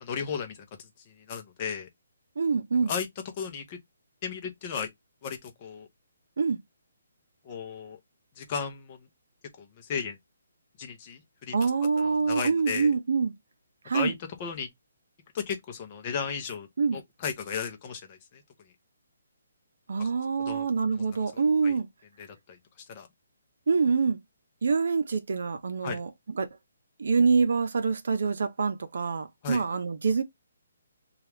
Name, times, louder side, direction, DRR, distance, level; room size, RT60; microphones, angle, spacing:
voice 1, 0.0-1.9 2.9-3.1 3.4-3.8 4.2-4.9 5.2-5.9 7.4-8.0 8.4-9.1 9.6-10.2 10.8-11.7 12.0-12.9 13.9-14.1 14.4-14.7 15.3-16.7 16.9-18.4 20.0-20.1 20.5-20.7 21.0-21.1 21.3-21.7 22.2-22.6 22.9-23.1 25.8-26.0 29.4-29.6, left 6 dB, 25° left, 0.6 m, -35 dB
voice 2, 2.4-2.9 6.4-6.6 11.5-13.3 13.9-14.1 16.8-17.0 19.9-21.9 23.7-24.2 24.6-26.1 26.4-26.5 27.0-30.2, right 5 dB, 60° right, 0.7 m, -25 dB
2.9 x 2.3 x 3.3 m
hypercardioid pair, 175°, 0 cm